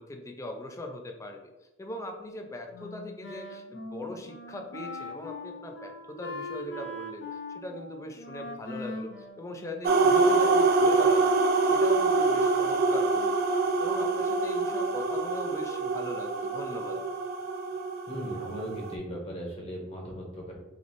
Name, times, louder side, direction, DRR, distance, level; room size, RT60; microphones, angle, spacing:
voice 1, 0.0-1.5 1.8-11.3 11.6-13.4 13.8-17.0, left 1 dB, 15° left, 3 dB, 0.4 m, -40 dB
Wind instrument woodwind instrument, 2.7-10.2, left 2 dB, 60° left, 0.6 m, -41 dB
sound 1, 9.8-18.9, right 3 dB, 50° right, 0.4 m, -25 dB
voice 2, 18.1-20.5, equal, 30° left, -2 dB, 1.0 m, -37 dB
4.0 x 3.1 x 3.0 m, 1.0 s
head